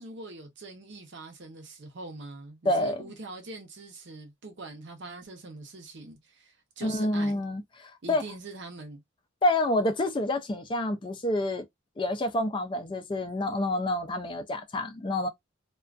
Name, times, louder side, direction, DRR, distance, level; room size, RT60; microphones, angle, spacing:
voice 1, 0.0-7.4 8.0-9.0, right 3 dB, 55° right, 0.7 m, -43 dB
voice 2, 2.7-3.0 6.8-8.2 9.4-11.6 12.0-15.3, left 1 dB, 25° left, 0.3 m, -28 dB
2.4 x 2.2 x 2.3 m
head